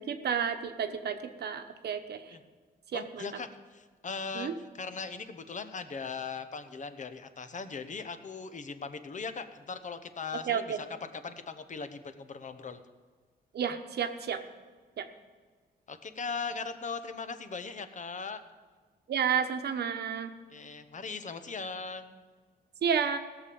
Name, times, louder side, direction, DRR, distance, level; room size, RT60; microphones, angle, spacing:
voice 1, 0.0-2.2 2.9-3.3 4.3-4.5 10.5-10.8 13.5-14.4 15.0-15.1 19.1-20.3 22.8-23.2, right 7 dB, 70° right, 7 dB, 1.1 m, -31 dB
voice 2, 2.9-12.8 15.9-18.4 20.5-22.2, left 5 dB, 45° left, 9 dB, 1.0 m, -39 dB
17.0 x 7.0 x 7.0 m, 1.4 s
cardioid pair, 100°, 18 cm